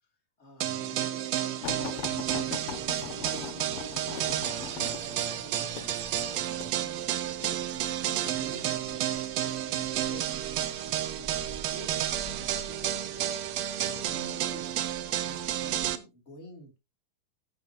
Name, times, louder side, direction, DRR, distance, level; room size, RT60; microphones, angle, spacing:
voice 1, 0.4-9.1 9.4-10.3 10.8-12.0 12.4-13.4 13.8-14.7 15.2-16.8, left 1 dB, 20° left, 2 dB, 3.1 m, -50 dB
sound 1, 0.6-16.0, right 11 dB, 70° right, 1.6 m, -31 dB
sound 2, 1.6-8.4 9.2-9.6 10.6-11.2 11.9-12.1 12.5-12.6, left 11 dB, 80° left, 1.5 m, -41 dB
sound 3, 2.0-15.9, right 2 dB, 15° right, 7.3 m, -50 dB
13.5 x 9.5 x 2.9 m, 0.25 s
omnidirectional pair, 4.0 m